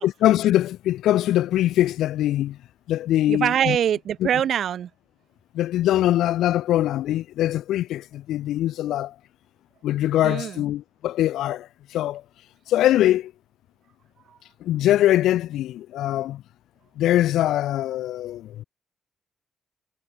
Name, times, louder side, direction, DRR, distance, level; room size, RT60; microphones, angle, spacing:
voice 1, 0.0-2.6 2.9-3.8 4.2-4.3 5.5-9.1 9.8-12.2 12.7-13.3 14.6-16.4 17.0-18.6, left 13 dB, 80° left, 4.1 m, -22 dB
voice 2, 3.3-4.9 10.2-10.6, right 9 dB, 70° right, 3.6 m, -23 dB
supercardioid pair, 55°, 0 cm